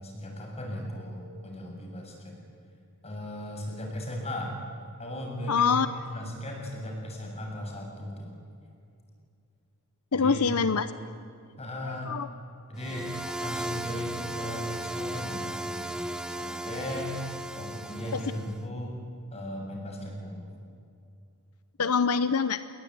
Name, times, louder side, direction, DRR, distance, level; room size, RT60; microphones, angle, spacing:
voice 1, 0.0-2.3 3.0-4.6 5.0-8.3 10.1-10.5 11.6-12.2 12.7-13.1 13.4-17.2 17.6-19.0 19.3-20.5, equal, 30° left, 1 dB, 7.2 m, -37 dB
voice 2, 5.5-5.9 10.1-10.9 12.1-12.3 18.1-18.2 21.8-22.6, left 5 dB, 85° left, 13 dB, 0.9 m, -24 dB
sound 1, 12.8-18.6, right 1 dB, 5° right, 1.0 m, -36 dB
28.0 x 22.0 x 9.5 m, 2.5 s
head